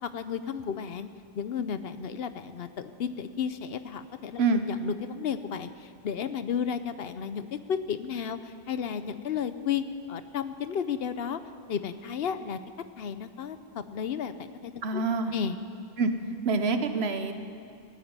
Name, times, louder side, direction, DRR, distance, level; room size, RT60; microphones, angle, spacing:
voice 1, 0.0-1.1 1.3-11.4 11.7-12.6 13.0-15.0 15.3-15.6, left 7 dB, 70° left, 11 dB, 0.9 m, -33 dB
voice 2, 14.8-15.3 16.0-16.1 16.4-17.3, right 3 dB, 75° right, 8 dB, 1.2 m, -26 dB
15.5 x 9.4 x 9.6 m, 2.4 s
omnidirectional pair, 1.1 m